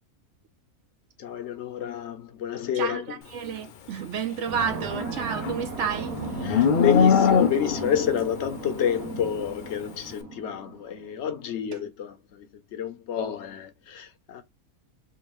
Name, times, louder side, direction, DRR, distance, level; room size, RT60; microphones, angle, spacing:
voice 1, 1.2-3.2 6.4-14.4, left 9 dB, 60° left, 0.9 m, -29 dB
voice 2, 2.7-6.5, right 7 dB, 65° right, 0.8 m, -31 dB
sound 1, 4.5-10.9, right 4 dB, 85° right, 1.4 m, -36 dB
Livestock farm animals working animals, 4.7-7.9, left 6 dB, 80° left, 0.4 m, -22 dB
3.6 x 2.7 x 3.0 m
omnidirectional pair, 1.5 m